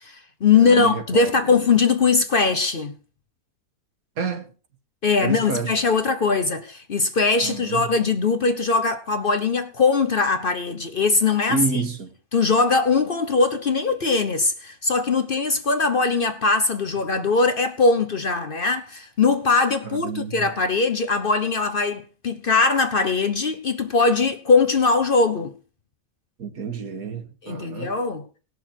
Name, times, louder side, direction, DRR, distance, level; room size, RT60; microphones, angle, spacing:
voice 1, 0.0-2.9 5.0-11.9 12.3-25.5 27.4-28.3, left 4 dB, 45° left, 0.8 m, -21 dB
voice 2, 0.6-1.6 4.2-4.5 5.2-5.7 7.4-7.9 11.5-12.1 19.8-20.5 26.4-28.0, right 4 dB, 75° right, 1.9 m, -29 dB
18.5 x 6.6 x 4.4 m
omnidirectional pair, 1.5 m